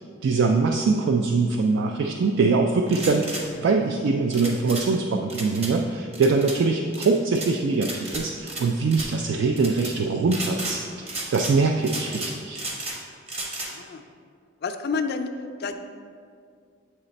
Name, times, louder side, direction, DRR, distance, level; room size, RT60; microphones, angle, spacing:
voice 1, 0.2-10.8 11.3-12.6, right 4 dB, 65° right, 4 dB, 0.3 m, -23 dB
sound 1, 2.9-3.4 4.3-4.9 5.3-5.7 6.1-6.6 6.9-7.5 7.8-8.6 8.9-9.1 9.6-9.9 10.3-10.8 11.1-11.6 11.8-13.0 13.3-13.7, right 2 dB, 35° right, 0.9 m, -33 dB
voice 2, 13.7-14.1 14.6-15.3 15.6-15.8, left 5 dB, 55° left, 7 dB, 0.4 m, -30 dB
7.8 x 3.2 x 4.0 m, 2.2 s
head